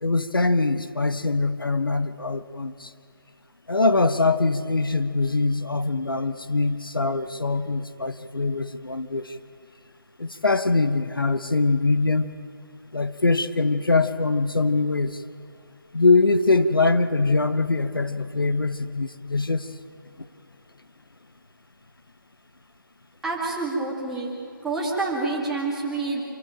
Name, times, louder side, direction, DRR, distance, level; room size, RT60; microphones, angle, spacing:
voice 1, 0.0-2.9 3.7-9.3 10.2-12.3 12.9-15.2 15.9-19.7, left 3 dB, 70° left, 11 dB, 1.1 m, -23 dB
voice 2, 23.2-24.3 24.6-26.2, right 3 dB, 5° right, -4 dB, 2.2 m, -27 dB
26.0 x 14.5 x 8.9 m, 2.5 s
figure-of-eight pair, 155°, 12 cm